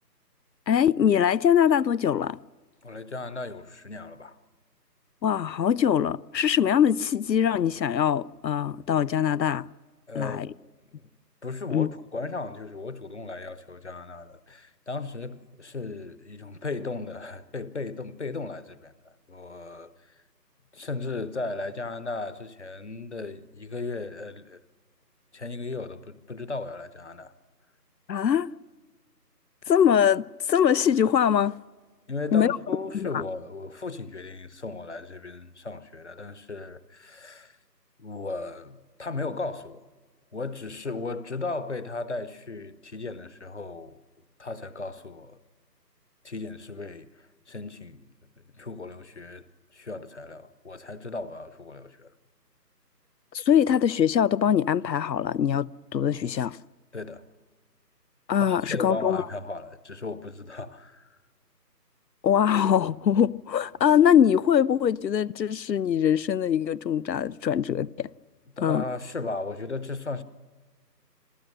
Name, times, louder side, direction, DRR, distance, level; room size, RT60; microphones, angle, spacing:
voice 1, 0.7-2.4 5.2-9.7 10.1-10.5 11.7-11.9 28.1-28.5 29.7-31.6 32.3-32.6 32.9-33.2 53.3-56.6 58.3-59.3 62.2-68.1 68.6-68.8, left 9 dB, 85° left, 0.6 m, -23 dB
voice 2, 2.8-4.4 10.1-10.5 11.0-11.1 11.4-19.9 20.7-24.6 25.3-27.3 32.1-37.6 38.0-39.8 40.3-44.0 44.4-45.4 46.2-48.0 48.5-49.4 49.7-52.1 56.9-57.2 58.4-61.1 68.6-70.2, left 3 dB, 45° left, 1.0 m, -36 dB
27.0 x 14.5 x 6.6 m
figure-of-eight pair, 170°, 50 cm